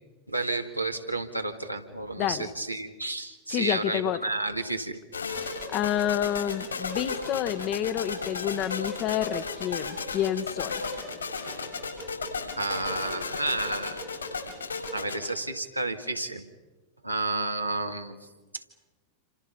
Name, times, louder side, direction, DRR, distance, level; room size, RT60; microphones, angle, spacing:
voice 1, 0.3-5.0 12.5-14.0 14.9-16.4 17.0-18.1 18.5-18.6, right 2 dB, 90° right, 4 dB, 2.3 m, -31 dB
voice 2, 2.2-2.5 3.5-4.2 5.7-10.8, left 11 dB, 35° left, 11 dB, 1.4 m, -29 dB
sound 1, 5.1-15.3, left 4 dB, 75° left, 7.3 m, -34 dB
28.5 x 27.0 x 5.5 m, 1.2 s
figure-of-eight pair, 90°, 0 cm